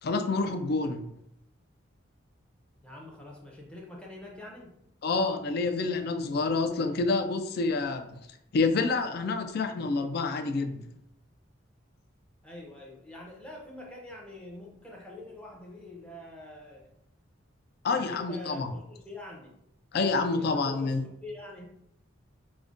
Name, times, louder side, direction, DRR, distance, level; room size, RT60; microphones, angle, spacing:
voice 1, 0.0-1.1 5.0-8.2 8.5-10.9 17.8-18.7 19.9-21.0, left 3 dB, 50° left, 7 dB, 0.3 m, -28 dB
voice 2, 2.8-4.8 12.4-16.9 17.9-19.6 20.4-21.7, left 1 dB, 5° left, -2 dB, 0.6 m, -45 dB
4.9 x 2.1 x 2.5 m, 0.78 s
head